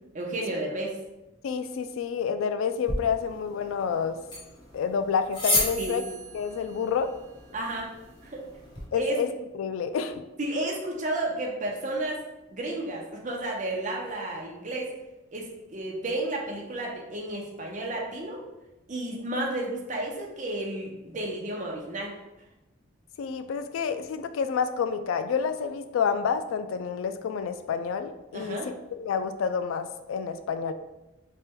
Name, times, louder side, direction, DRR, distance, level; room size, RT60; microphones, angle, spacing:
voice 1, 0.1-1.0 5.8-6.0 7.5-7.9 8.2-8.4 8.9-9.2 10.4-12.2 12.5-14.9 15.3-18.4 18.9-22.1 28.3-28.7, right 1 dB, 40° right, -1 dB, 0.7 m, -32 dB
voice 2, 1.4-4.2 4.7-6.0 6.3-7.1 8.9-9.3 9.5-10.2 23.2-30.7, left 6 dB, 85° left, 10 dB, 0.3 m, -29 dB
sound 1, 2.8-8.8, left 2 dB, 25° left, 0.9 m, -33 dB
3.3 x 2.2 x 4.3 m, 0.97 s
head